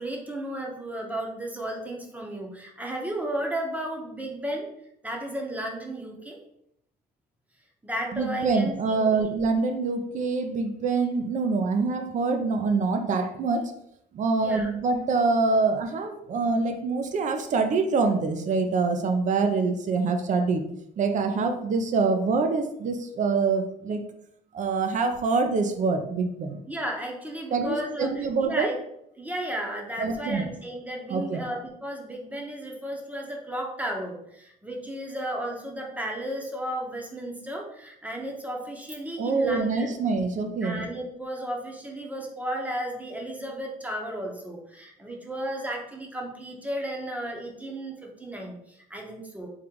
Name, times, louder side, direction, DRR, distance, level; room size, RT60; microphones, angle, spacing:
voice 1, 0.0-4.7 5.0-6.4 7.8-9.2 14.3-14.7 26.7-28.8 29.2-39.9 40.6-49.5, right 1 dB, 10° right, 0 dB, 0.9 m, -34 dB
voice 2, 8.1-13.7 14.1-20.6 21.0-24.0 24.5-26.6 27.5-28.7 30.0-30.5 31.1-31.4 39.2-40.8, right 4 dB, 45° right, 6 dB, 0.6 m, -25 dB
3.7 x 2.5 x 4.5 m, 0.76 s
cardioid pair, 110°, 17 cm